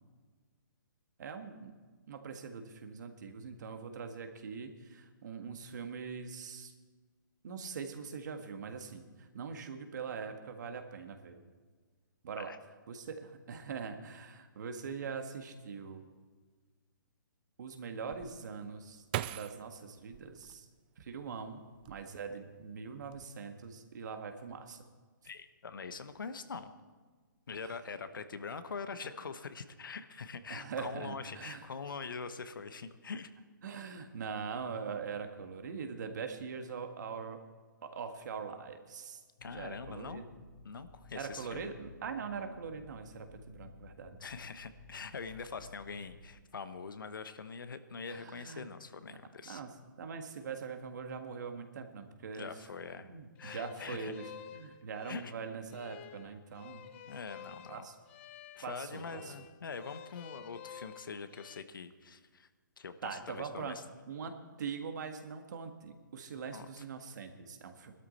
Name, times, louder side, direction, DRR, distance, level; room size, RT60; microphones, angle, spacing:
voice 1, 1.2-1.7 2.1-6.7 7.4-11.4 12.2-12.5 12.9-16.0 17.6-20.7 21.0-24.8 27.6-27.7 30.5-31.7 33.6-37.4 37.8-40.3 41.1-44.2 48.1-48.7 49.4-52.5 53.1-56.9 57.7-57.9 58.6-59.5 63.0-63.8 64.1-67.9, right 5 dB, 60° right, 6 dB, 1.7 m, -42 dB
sound 1, 18.1-21.2 21.7-22.5 22.8-23.3, right 14 dB, 25° right, 0.3 m, -41 dB
voice 2, 25.2-26.7 27.5-33.3 39.4-40.2 40.6-41.7 44.2-49.6 52.3-53.1 53.4-54.1 55.1-55.3 57.1-57.9 58.5-62.5 62.8-63.8 66.5-66.7, left 5 dB, 75° left, 11 dB, 1.1 m, -43 dB
sound 2, 39.4-46.4, left 3 dB, 60° left, 4.5 m, -55 dB
sound 3, 53.4-61.6, left 9 dB, 35° left, 0.7 m, -52 dB
19.0 x 12.5 x 4.3 m, 1.4 s
hypercardioid pair, 150°, 11 cm